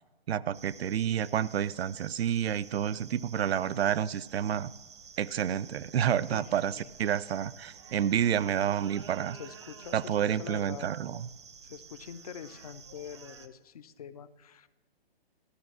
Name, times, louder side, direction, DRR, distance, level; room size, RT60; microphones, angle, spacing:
voice 1, 0.3-4.7 5.2-9.4 9.9-11.3, right 9 dB, 85° right, 18 dB, 0.5 m, -29 dB
sound 1, 0.5-13.5, right 6 dB, 30° right, 0.4 m, -51 dB
voice 2, 6.3-6.9 9.3-10.9 11.6-14.7, left 8 dB, 40° left, 14 dB, 0.5 m, -45 dB
13.0 x 6.0 x 6.1 m, 1.2 s
hypercardioid pair, 165°, 30 cm